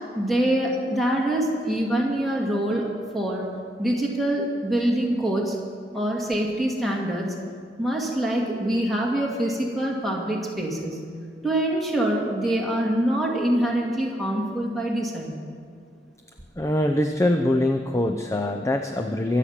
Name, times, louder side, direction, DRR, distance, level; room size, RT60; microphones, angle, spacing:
voice 1, 0.1-2.9 3.1-3.4 3.8-5.6 5.9-7.3 7.8-11.0 11.4-15.4, right 1 dB, ahead, -3 dB, 2.2 m, -25 dB
voice 2, 16.6-19.4, left 1 dB, 15° left, 5 dB, 0.5 m, -23 dB
23.5 x 8.4 x 5.8 m, 2.2 s
head